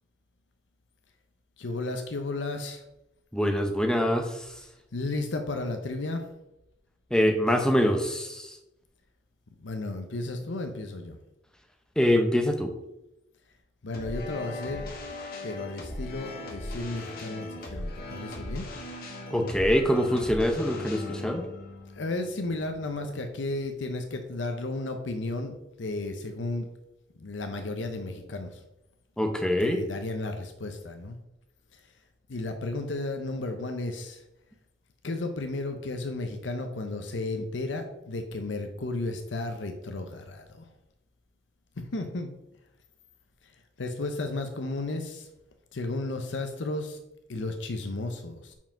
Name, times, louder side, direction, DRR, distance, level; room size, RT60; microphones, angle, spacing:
voice 1, 1.6-2.8 4.9-6.3 9.6-11.2 13.8-14.9 15.4-18.7 21.9-26.7 27.2-28.6 29.6-31.2 31.7-31.8 32.3-34.2 35.0-40.7 41.8-42.3 43.4-45.3 45.7-47.0 47.3-48.5, left 2 dB, 85° left, 6 dB, 0.7 m, -33 dB
voice 2, 3.3-4.3 7.1-8.5 12.0-12.7 19.3-21.4 29.2-29.8, equal, 5° left, 5 dB, 0.7 m, -24 dB
sound 1, 13.9-23.1, left 2 dB, 50° left, 1.4 m, -39 dB
5.5 x 4.9 x 5.7 m, 0.90 s
head